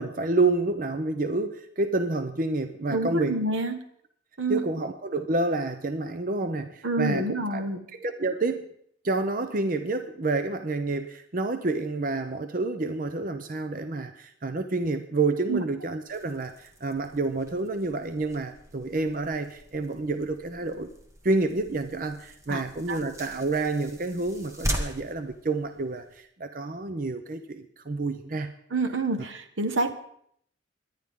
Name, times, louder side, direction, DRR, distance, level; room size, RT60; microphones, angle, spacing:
voice 1, 0.0-3.4 4.5-7.7 7.9-8.7 9.0-20.9 21.2-28.5 29.2-29.3, right 3 dB, 45° right, 9 dB, 0.6 m, -29 dB
voice 2, 2.9-3.8 4.4-4.6 6.8-7.8 15.5-15.6 22.5-22.6 22.9-23.0 28.7-29.9, right 2 dB, 80° right, 8 dB, 1.4 m, -27 dB
sound 1, 16.1-26.2, equal, 15° right, 1.4 m, -40 dB
23.5 x 10.5 x 3.7 m, 0.69 s
head